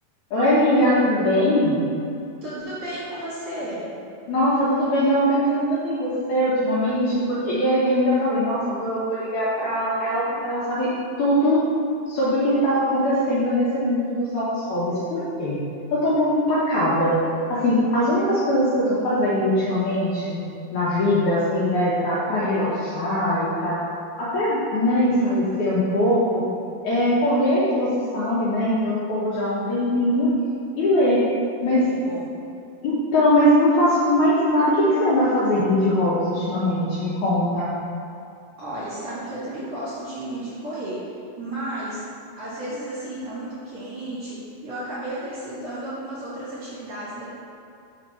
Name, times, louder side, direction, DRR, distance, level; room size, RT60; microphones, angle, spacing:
voice 1, 0.3-1.8 4.3-10.9 11.2-11.7 12.1-15.6 15.9-17.2 17.5-20.4 20.7-23.8 24.2-26.5 26.8-30.3 30.8-31.2 31.6-31.8 32.8-37.7, equal, 70° left, -9 dB, 1.9 m, -21 dB
voice 2, 2.4-3.8 25.1-25.7 31.7-32.3 38.6-42.0 42.4-47.2, right 1 dB, 50° right, -11 dB, 2.2 m, -33 dB
5.7 x 4.4 x 6.2 m, 2.6 s
omnidirectional pair, 4.6 m